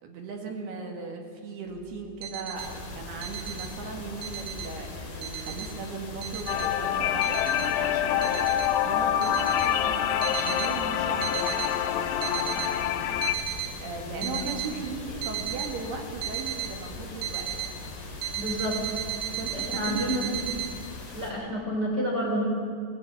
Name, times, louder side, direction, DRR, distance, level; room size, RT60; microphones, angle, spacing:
voice 1, 0.0-8.4 8.8-11.6 13.8-17.7 19.2-20.3, right 4 dB, 60° right, 2 dB, 3.8 m, -38 dB
sound 1, 2.0-2.7 3.2-3.7 4.0-4.7 5.2-5.7 6.2-6.7 7.2-7.7 8.2-8.7 9.2-9.7 10.2-10.7 11.2-11.7 12.1-12.7 13.2-13.7 14.2-14.7 15.2-15.7 16.2-16.7 17.2-17.7 18.2-20.7, right 12 dB, 75° right, 3.9 m, -34 dB
sound 2, 2.6-21.3, left 3 dB, 50° left, 5.1 m, -41 dB
sound 3, 6.5-13.4, left 10 dB, 80° left, 3.2 m, -26 dB
voice 2, 18.4-18.8 19.5-20.3 21.1-22.4, equal, 25° right, -4 dB, 3.6 m, -29 dB
18.5 x 14.5 x 9.8 m, 2.2 s
omnidirectional pair, 5.7 m